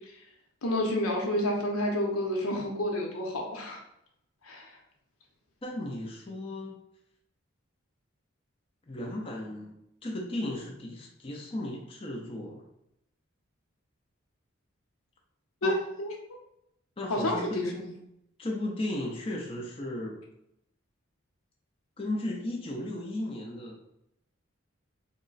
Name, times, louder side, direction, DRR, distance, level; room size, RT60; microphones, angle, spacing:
voice 1, 0.6-3.8 4.4-4.7 15.6-16.1 17.1-17.9, left 1 dB, 90° left, 0 dB, 0.8 m, -29 dB
voice 2, 5.6-6.8 8.9-9.7 10.0-12.6 15.6-15.8 17.0-17.8 18.4-20.2 22.0-23.9, left 1 dB, 25° left, -1 dB, 0.5 m, -35 dB
3.6 x 2.1 x 3.9 m, 0.79 s
head